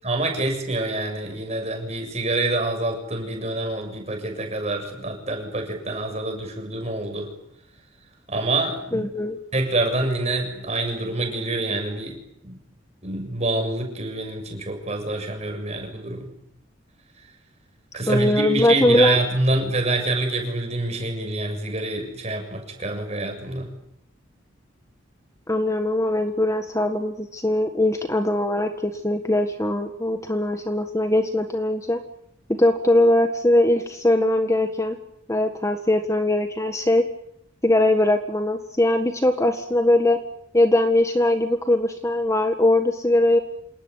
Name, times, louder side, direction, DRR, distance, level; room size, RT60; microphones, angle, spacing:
voice 1, 0.0-7.3 8.3-9.1 9.5-12.2 12.4-12.6 13.0-16.4 17.9-23.7, right 2 dB, 35° right, 4 dB, 7.2 m, -26 dB
voice 2, 8.9-9.4 18.1-19.2 25.5-32.0 32.5-35.0 35.3-37.0 37.6-40.2 40.5-43.4, left 1 dB, 15° left, 7 dB, 1.7 m, -21 dB
27.5 x 19.0 x 9.5 m, 0.75 s
head